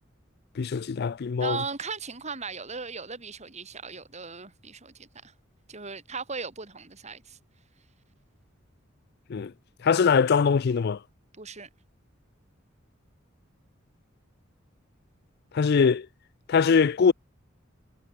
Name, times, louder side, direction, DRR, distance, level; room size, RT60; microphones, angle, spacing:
voice 1, 0.6-1.6 9.3-9.5 9.8-11.0 15.5-16.1 16.5-17.1, left 5 dB, 55° left, 0.4 m, -22 dB
voice 2, 1.4-5.3 5.7-7.4 11.4-11.7, right 5 dB, 35° right, 3.9 m, -37 dB
head